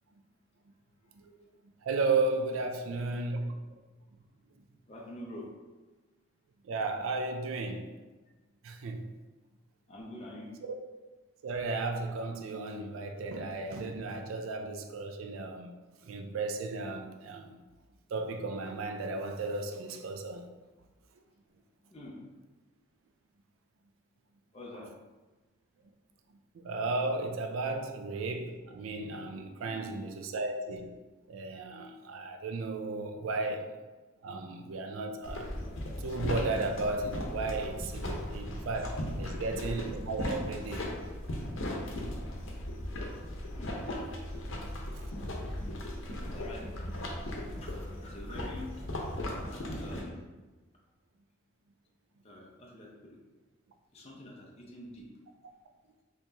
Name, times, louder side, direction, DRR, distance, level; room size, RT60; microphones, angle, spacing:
voice 1, 1.8-3.5 6.6-7.9 8.6-9.1 10.6-10.7 11.4-15.7 16.0-17.5 18.1-20.5 26.5-30.9 31.3-33.8 34.2-35.5 36.0-40.9 44.9-45.1, right 3 dB, 80° right, 0.4 m, -34 dB
voice 2, 4.9-5.5 9.9-10.6 21.9-22.2 24.5-24.9 29.6-29.8 39.2-39.4 43.5-43.8 45.0-45.7 46.0-46.8 47.5-50.2 52.2-53.2 53.9-55.1, left 1 dB, 30° left, 0.6 m, -47 dB
sound 1, 35.2-50.0, left 1 dB, 70° left, 0.8 m, -37 dB
4.3 x 3.0 x 2.7 m
head